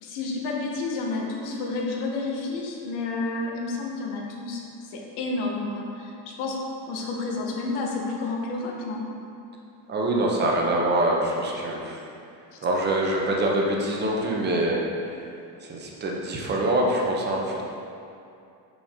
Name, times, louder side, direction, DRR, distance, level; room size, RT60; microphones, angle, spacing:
voice 1, 0.0-4.6 4.9-6.6 6.9-9.0 12.5-12.6, left 3 dB, 80° left, -1 dB, 1.1 m, -30 dB
voice 2, 9.9-12.0 12.6-14.8 15.6-17.6, right 1 dB, 25° right, -1 dB, 0.8 m, -24 dB
5.3 x 5.1 x 3.6 m, 2.6 s
cardioid pair, 150°, 40 cm